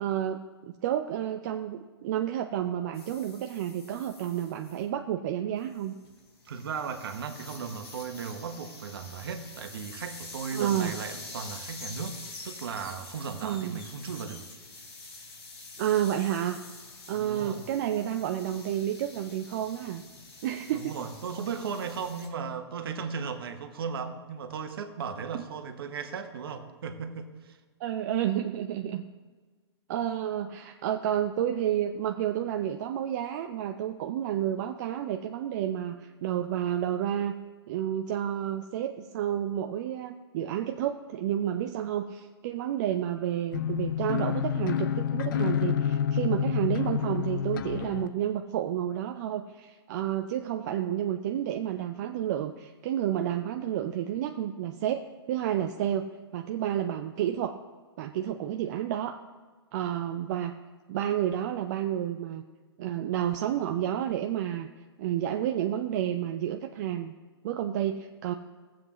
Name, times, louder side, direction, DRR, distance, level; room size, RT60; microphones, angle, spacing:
voice 1, 0.0-5.9 10.5-10.9 13.4-13.8 15.8-16.6 17.1-20.0 20.4-21.0 25.3-25.4 27.8-29.0 29.9-37.3 37.7-55.0 55.3-57.6 58.0-59.2 59.7-60.5 60.9-62.4 62.8-64.7 65.0-67.1 67.4-68.3, right 11 dB, 45° right, 5 dB, 0.5 m, -30 dB
sound 1, 2.9-4.8 5.6-22.3, left 3 dB, 75° left, 3.4 m, -46 dB
voice 2, 6.4-12.2 12.4-14.4 17.1-17.6 20.7-27.6, right 6 dB, 60° right, 7 dB, 1.2 m, -36 dB
sound 2, 43.5-48.1, left 8 dB, 50° left, 0.5 m, -28 dB
16.5 x 7.6 x 3.0 m, 1.4 s
figure-of-eight pair, 120°, 14 cm